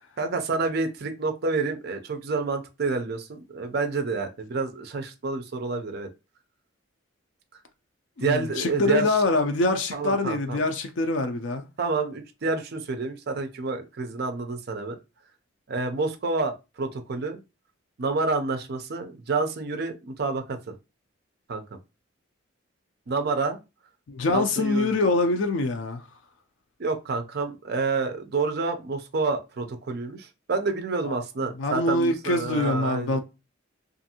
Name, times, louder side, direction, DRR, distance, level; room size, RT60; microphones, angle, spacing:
voice 1, 0.2-6.1 8.2-9.2 9.9-10.6 11.8-15.0 15.7-17.4 18.0-20.7 21.5-21.6 23.1-23.6 24.3-24.9 26.8-33.2, right 4 dB, 55° right, 0.5 m, -28 dB
voice 2, 8.2-11.6 24.1-26.0 31.1-31.2 31.6-33.2, left 2 dB, 65° left, 0.4 m, -24 dB
2.5 x 2.5 x 2.7 m
head